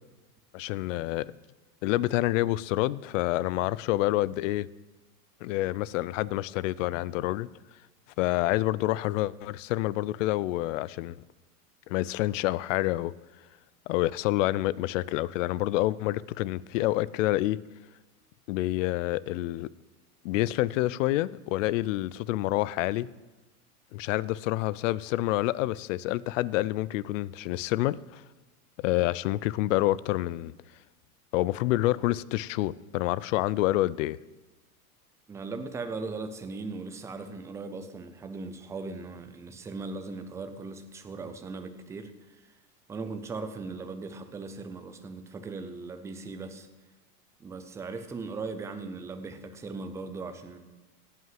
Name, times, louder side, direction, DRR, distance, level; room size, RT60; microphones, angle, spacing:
voice 1, 0.5-1.3 1.8-4.7 5.4-7.5 8.2-11.2 11.9-13.1 13.9-17.6 18.5-19.7 20.2-23.1 23.9-28.2 28.8-30.5 31.3-34.2, left 16 dB, 55° left, 20 dB, 0.5 m, -28 dB
voice 2, 35.3-42.6 42.9-46.7 47.4-50.6, right 3 dB, 5° right, 8 dB, 0.4 m, -38 dB
17.0 x 5.7 x 7.6 m, 1.2 s
supercardioid pair, 140°, 45 cm